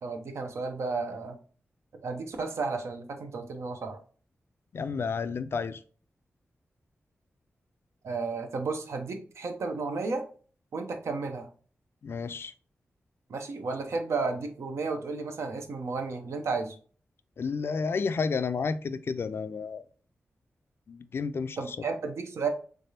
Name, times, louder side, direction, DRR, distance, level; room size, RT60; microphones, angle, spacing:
voice 1, 0.0-1.4 2.0-4.0 8.0-10.3 10.7-11.5 13.3-16.7 21.6-22.5, right 4 dB, 85° right, 0.7 m, -33 dB
voice 2, 4.7-5.8 12.0-12.5 17.4-19.8 20.9-21.9, left 5 dB, 55° left, 0.3 m, -31 dB
3.7 x 3.3 x 2.7 m
wide cardioid pair, 95°, 5 cm